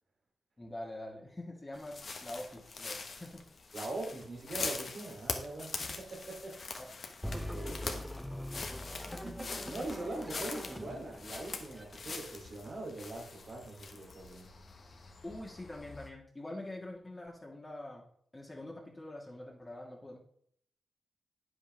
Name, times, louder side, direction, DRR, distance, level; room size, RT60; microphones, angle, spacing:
voice 1, 0.6-3.5 6.8-7.2 9.0-9.4 15.2-18.1 18.3-20.2, left 1 dB, 25° left, -2 dB, 1.8 m, -45 dB
sound 1, 1.7-16.1, left 4 dB, 55° left, 1.3 m, -43 dB
voice 2, 3.7-6.7 7.3-8.1 9.2-14.5, right 2 dB, 60° right, 0 dB, 3.0 m, -42 dB
sound 2, 7.2-12.7, left 1 dB, ahead, 0.7 m, -43 dB
8.8 x 7.7 x 3.4 m, 0.65 s
supercardioid pair, 45°, 0 cm